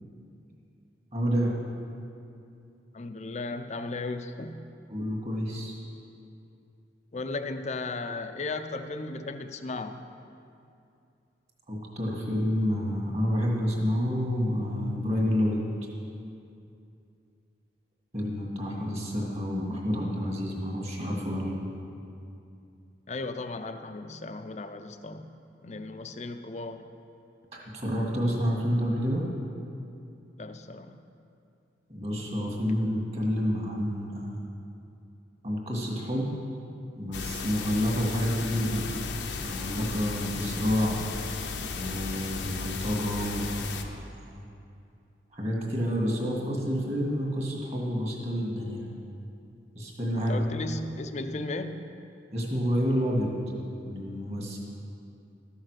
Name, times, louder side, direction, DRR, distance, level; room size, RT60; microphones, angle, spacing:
voice 1, 1.1-1.5 4.9-5.8 11.7-15.6 18.1-21.5 27.5-29.2 31.9-34.5 35.4-36.3 36.9-38.9 39.4-41.0 41.8-44.4 45.3-48.9 49.7-50.3 52.3-53.3 53.9-54.6, equal, 35° right, -2 dB, 1.9 m, -29 dB
voice 2, 2.9-4.6 7.1-10.1 23.1-25.3 25.6-26.8 30.4-31.0 50.1-51.9, left 3 dB, 40° left, 8 dB, 0.5 m, -36 dB
sound 1, 37.1-43.8, left 5 dB, 80° left, 0.8 m, -35 dB
13.0 x 6.6 x 6.4 m, 2.6 s
head